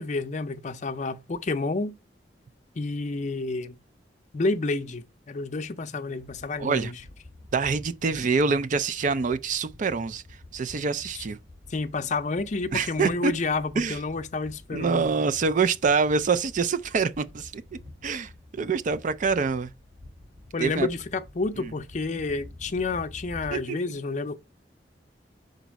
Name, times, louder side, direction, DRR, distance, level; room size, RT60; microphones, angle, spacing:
voice 1, 0.0-2.0 2.8-3.8 4.3-7.0 11.7-15.1 20.5-24.4, left 3 dB, 45° left, 0.5 m, -29 dB
sound 1, 6.2-23.6, left 2 dB, 80° right, 3.1 m, -48 dB
voice 2, 6.6-6.9 7.5-10.2 10.5-11.4 12.7-13.3 13.8-14.0 14.7-19.7 20.6-20.9 21.6-21.7 23.5-23.8, right 5 dB, 45° right, 0.4 m, -26 dB
5.1 x 4.0 x 4.6 m
head